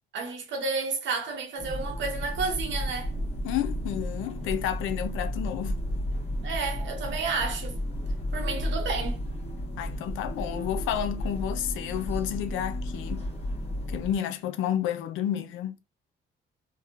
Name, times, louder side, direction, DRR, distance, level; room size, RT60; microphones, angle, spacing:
voice 1, 0.1-3.1 6.4-7.8 8.3-9.2, right 4 dB, 70° right, 0.9 m, -31 dB
sound 1, 1.6-14.2, equal, 30° left, 1.1 m, -33 dB
voice 2, 3.4-5.8 9.8-13.3 13.9-15.8, left 10 dB, 90° left, 0.4 m, -31 dB
2.6 x 2.1 x 2.8 m
cardioid pair, 90°, 20 cm